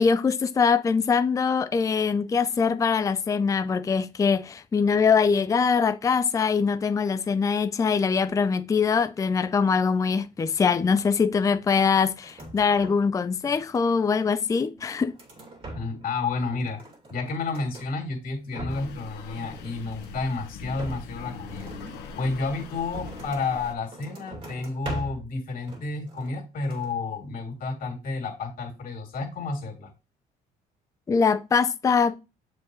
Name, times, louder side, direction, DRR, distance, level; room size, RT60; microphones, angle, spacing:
voice 1, 0.0-15.1 31.1-32.2, left 5 dB, 20° left, 0.4 m, -23 dB
sound 1, 12.2-13.1 13.4-14.2 14.7-16.2 16.4-17.9 18.3-19.0 19.3-20.3 20.7-23.5 23.9-25.3 25.6-26.4 26.6-27.0, right 2 dB, 30° right, 2.4 m, -41 dB
voice 2, 15.7-16.8 17.1-21.7 22.2-29.9, left 3 dB, 55° left, 2.6 m, -31 dB
sound 2, 18.7-23.7, left 5 dB, 85° left, 1.2 m, -41 dB
7.0 x 4.7 x 3.1 m
cardioid pair, 110°, 17 cm